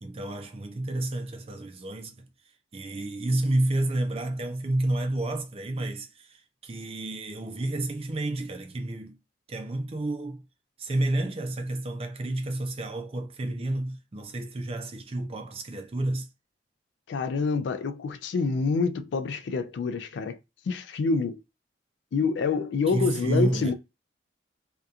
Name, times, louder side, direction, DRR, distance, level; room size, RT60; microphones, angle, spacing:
voice 1, 0.0-2.3 2.7-9.2 9.5-10.4 10.8-16.3 22.9-23.7, right 1 dB, 30° right, 0.4 m, -30 dB
voice 2, 17.1-20.4 20.7-21.4 22.1-23.7, left 4 dB, 75° left, 0.3 m, -27 dB
2.8 x 2.3 x 2.3 m
head